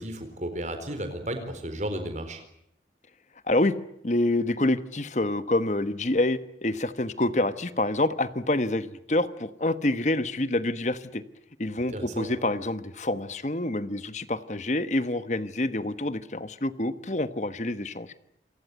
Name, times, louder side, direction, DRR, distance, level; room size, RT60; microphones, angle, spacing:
voice 1, 0.0-2.4 11.9-12.3, right 1 dB, 40° right, 8 dB, 4.3 m, -33 dB
voice 2, 4.0-11.2 11.6-18.1, left 1 dB, 40° left, 13 dB, 1.2 m, -27 dB
27.5 x 18.5 x 9.4 m, 0.73 s
head